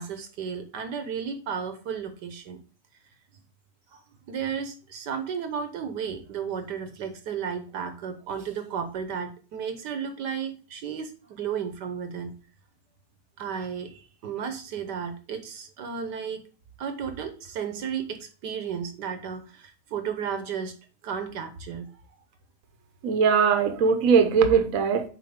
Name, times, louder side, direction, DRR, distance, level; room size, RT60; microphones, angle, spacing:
voice 1, 0.0-2.6 3.9-4.0 4.3-12.4 13.4-16.4 16.8-20.8 21.0-21.9, right 7 dB, 70° right, 8 dB, 1.5 m, -33 dB
voice 2, 23.0-25.0, right 6 dB, 55° right, 6 dB, 1.2 m, -20 dB
7.7 x 4.6 x 3.6 m, 0.36 s
omnidirectional pair, 1.9 m